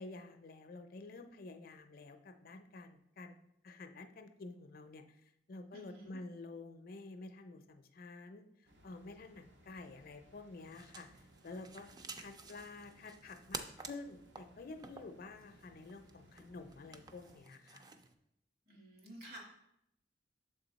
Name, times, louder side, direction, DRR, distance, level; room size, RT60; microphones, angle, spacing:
voice 1, 0.0-3.4 3.6-11.9 12.2-17.8, left 3 dB, 55° left, 7 dB, 0.5 m, -50 dB
voice 2, 5.7-6.1 18.7-19.4, right 1 dB, 60° right, -1 dB, 1.8 m, -52 dB
sound 1, 8.7-17.4, equal, 85° right, 1.0 m, -65 dB
sound 2, 10.6-18.1, right 4 dB, 25° right, 0.3 m, -51 dB
6.8 x 3.7 x 4.0 m, 0.80 s
head